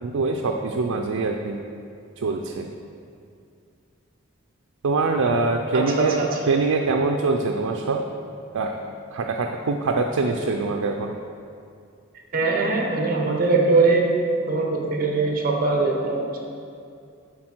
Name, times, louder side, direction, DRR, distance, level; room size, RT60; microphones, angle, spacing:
voice 1, 0.0-1.6 2.2-2.7 4.8-8.1 8.5-8.8 9.1-11.1, right 3 dB, 90° right, 3 dB, 0.4 m, -24 dB
voice 2, 5.7-6.4 12.3-14.0 14.5-16.4, right 3 dB, 40° right, 0 dB, 1.0 m, -21 dB
10.5 x 4.1 x 4.4 m, 2.4 s
head